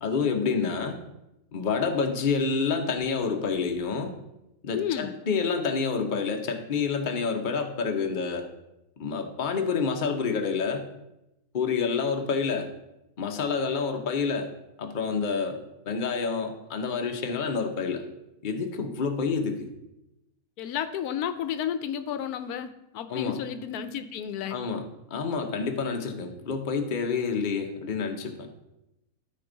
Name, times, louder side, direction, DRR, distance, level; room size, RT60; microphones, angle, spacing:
voice 1, 0.0-1.0 1.5-4.1 4.6-8.5 9.0-10.9 11.5-12.7 13.2-14.5 14.8-15.6 15.8-18.0 18.4-19.7 23.1-23.4 24.5-28.3, left 5 dB, 40° left, 4 dB, 0.9 m, -28 dB
voice 2, 4.7-5.1 20.6-24.6, left 9 dB, 90° left, 10 dB, 1.1 m, -32 dB
13.0 x 4.4 x 3.9 m, 0.90 s
omnidirectional pair, 1.6 m